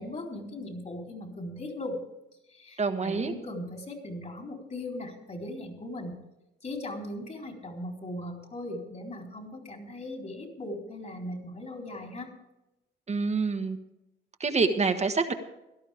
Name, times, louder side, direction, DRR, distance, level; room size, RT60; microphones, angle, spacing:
voice 1, 0.0-2.0 2.5-6.2 6.6-12.3, left 1 dB, 35° left, 2 dB, 4.0 m, -38 dB
voice 2, 2.8-3.3 13.1-13.8 14.4-15.3, right 4 dB, 35° right, 6 dB, 1.3 m, -26 dB
17.5 x 12.5 x 3.6 m, 0.93 s
cardioid pair, 90°, 20 cm